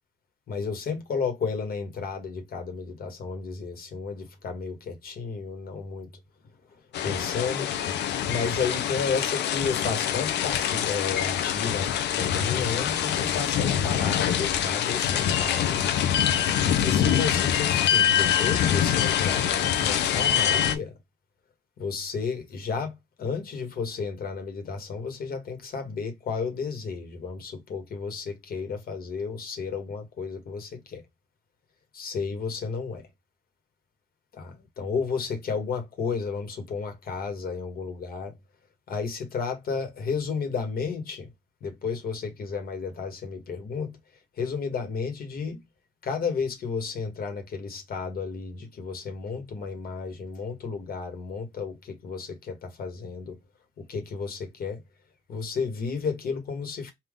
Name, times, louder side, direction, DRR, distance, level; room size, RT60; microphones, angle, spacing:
voice 1, 0.5-6.1 7.0-8.0 8.3-15.8 16.8-20.9 21.8-31.0 31.9-33.1 34.3-38.4 38.9-41.3 41.6-43.9 44.3-45.6 46.0-53.4 53.8-54.8 55.3-56.9, left 5 dB, 60° left, 1.5 m, -32 dB
sound 1, 6.9-20.8, left 9 dB, 80° left, 0.7 m, -25 dB
3.7 x 2.7 x 3.6 m
cardioid pair, 110°, 18 cm